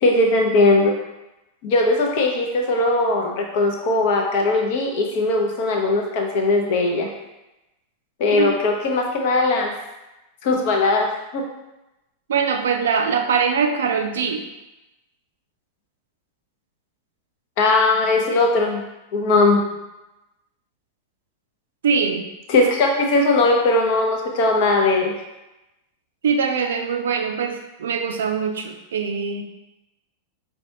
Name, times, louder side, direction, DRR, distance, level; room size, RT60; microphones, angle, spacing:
voice 1, 0.0-0.9 1.6-7.1 8.2-9.7 10.4-11.1 11.3-11.4 17.6-18.8 19.1-19.7 22.5-25.1, left 2 dB, 50° left, 1 dB, 0.7 m, -19 dB
voice 2, 12.3-14.5 21.8-22.2 26.2-29.4, right 6 dB, 65° right, 5 dB, 0.4 m, -22 dB
5.0 x 2.3 x 2.8 m, 0.97 s
figure-of-eight pair, 90°, 0 cm